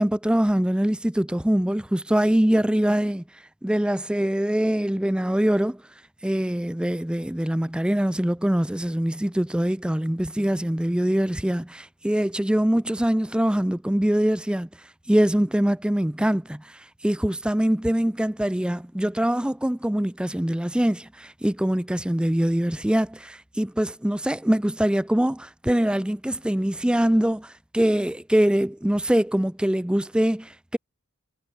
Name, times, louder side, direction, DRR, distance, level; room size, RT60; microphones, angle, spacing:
voice 1, 0.0-5.8 6.2-30.8, equal, 5° right, 0.4 m, -23 dB
head